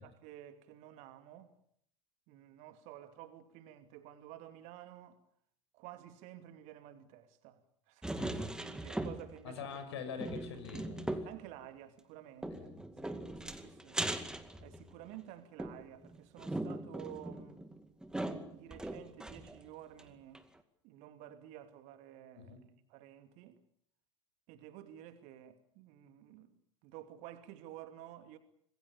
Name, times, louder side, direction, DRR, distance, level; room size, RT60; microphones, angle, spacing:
voice 1, 0.0-1.5 2.3-5.2 5.7-7.6 7.9-9.6 11.2-12.7 13.0-14.0 14.6-17.7 18.5-20.5 20.8-22.6 22.9-23.6 24.5-28.4, right 12 dB, 45° right, 2.7 m, -52 dB
sound 1, 8.0-9.5 9.8-9.9 10.2-11.4 12.4-15.1 15.6-19.6 20.0-20.1 20.3-20.4, right 1 dB, 5° right, 2.2 m, -40 dB
voice 2, 9.4-11.3 12.5-12.8 22.3-22.6, left 6 dB, 60° left, 5.9 m, -44 dB
26.5 x 21.5 x 7.0 m
figure-of-eight pair, 80°, 16 cm